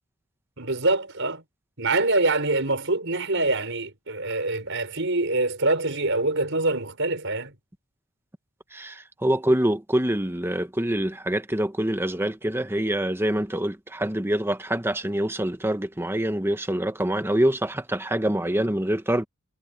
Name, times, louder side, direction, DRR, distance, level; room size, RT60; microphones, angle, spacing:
voice 1, 0.6-1.4 1.8-7.5, right 2 dB, 60° right, 6.3 m, -25 dB
voice 2, 8.7-19.2, right 1 dB, 10° right, 1.2 m, -25 dB
head